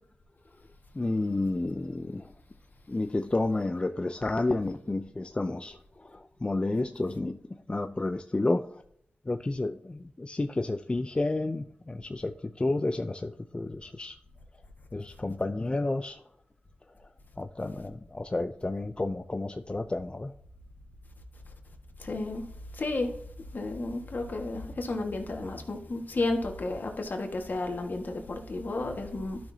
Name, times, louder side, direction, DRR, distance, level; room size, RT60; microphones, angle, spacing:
voice 1, 0.9-2.3 2.9-5.8 6.0-8.8 9.3-14.2 14.9-16.2 17.4-20.3, left 2 dB, 30° left, 0.5 m, -31 dB
voice 2, 22.0-22.4 22.8-23.1 23.5-29.4, left 2 dB, 55° left, 1.6 m, -32 dB
12.0 x 6.1 x 2.8 m
cardioid pair, 65°, 4 cm